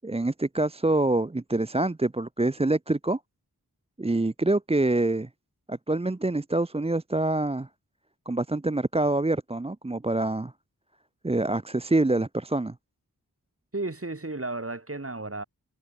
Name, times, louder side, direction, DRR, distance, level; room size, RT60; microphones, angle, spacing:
voice 1, 0.0-3.2 4.0-5.3 5.7-7.7 8.3-10.5 11.2-12.7, right 2 dB, 15° right, 0.6 m, -26 dB
voice 2, 13.7-15.4, right 2 dB, 35° right, 2.8 m, -33 dB
wide cardioid pair, 40°, 38 cm